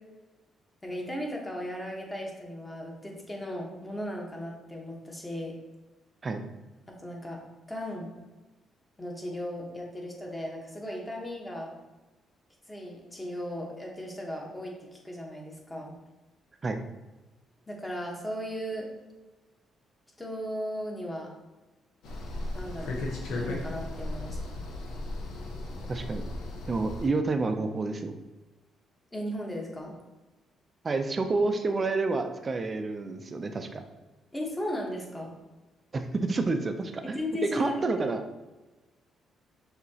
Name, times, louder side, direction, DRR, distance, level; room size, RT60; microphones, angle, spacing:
voice 1, 0.8-5.5 6.9-7.4 7.7-8.1 9.0-11.7 12.7-15.9 17.7-18.9 20.2-21.3 22.5-23.0 23.3-24.4 29.1-29.9 34.3-35.3 37.0-37.8, equal, 15° left, -1 dB, 1.2 m, -36 dB
sound 1, 22.0-27.1, left 2 dB, 80° left, 0.8 m, -36 dB
voice 2, 25.9-26.2 26.7-28.2 30.8-33.8 35.9-38.2, right 3 dB, 35° right, 6 dB, 0.5 m, -29 dB
6.1 x 2.9 x 2.8 m, 1.2 s
cardioid pair, 90°, 0 cm